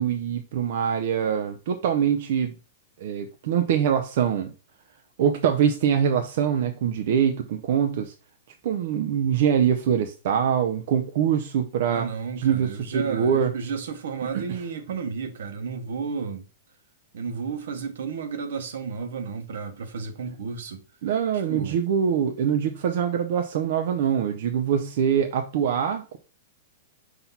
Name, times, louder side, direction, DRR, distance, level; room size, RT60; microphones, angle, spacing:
voice 1, 0.0-2.5 3.0-4.5 5.2-8.1 8.6-12.1 12.4-13.5 14.3-14.6 21.0-26.2, right 8 dB, 50° right, 0.6 m, -24 dB
voice 2, 11.9-16.4 17.1-20.8 21.3-21.8, right 5 dB, 70° right, 1.1 m, -32 dB
5.9 x 2.9 x 5.5 m
supercardioid pair, 170°, 0 cm